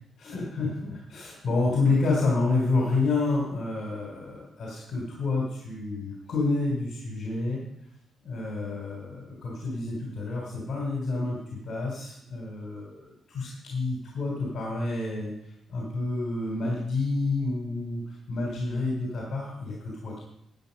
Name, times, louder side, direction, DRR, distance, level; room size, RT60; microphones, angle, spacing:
voice 1, 0.2-7.6 8.2-13.0 13.3-15.3 15.7-18.0 18.3-20.2, left 3 dB, 55° left, -3 dB, 3.6 m, -29 dB
12.0 x 8.6 x 5.4 m, 0.77 s
cardioid pair, 115°, 0 cm